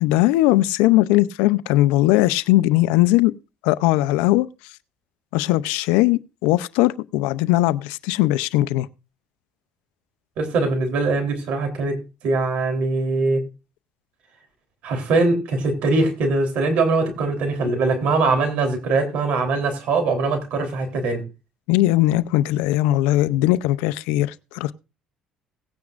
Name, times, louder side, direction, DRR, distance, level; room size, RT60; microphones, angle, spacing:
voice 1, 0.0-3.3 3.6-4.5 5.3-8.9 21.7-24.7, left 16 dB, 90° left, 0.5 m, -19 dB
voice 2, 10.4-13.4 14.8-21.2, right 3 dB, 70° right, 3.4 m, -22 dB
17.5 x 9.4 x 2.5 m
supercardioid pair, 90°, 2 cm